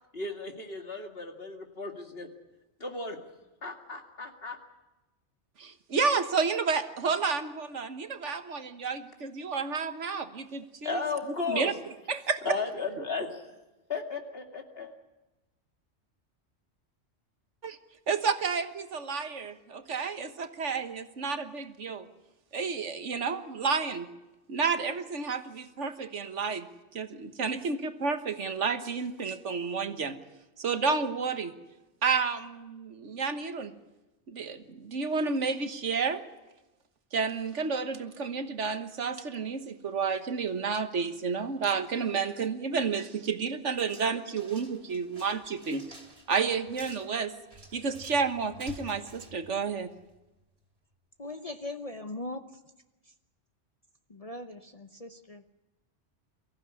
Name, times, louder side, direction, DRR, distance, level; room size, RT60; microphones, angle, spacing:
voice 1, 0.1-2.3 2.8-3.2 3.6-4.6 10.8-11.7 12.4-13.4 13.9-14.9, left 4 dB, 55° left, 4 dB, 2.6 m, -35 dB
voice 2, 5.6-11.0 11.5-11.7 12.1-12.4 17.6-17.8 18.1-22.1 22.5-24.1 24.5-26.7 26.9-30.2 30.6-31.5 32.0-33.7 34.3-36.2 37.1-45.9 46.3-47.4 47.7-49.9, right 5 dB, 80° right, 9 dB, 1.7 m, -31 dB
sound 1, 43.7-50.2, right 1 dB, 55° right, 3.4 m, -51 dB
voice 3, 51.2-52.4 54.1-55.4, left 2 dB, 35° left, 7 dB, 1.0 m, -39 dB
24.0 x 15.0 x 9.8 m, 1.0 s
omnidirectional pair, 1.2 m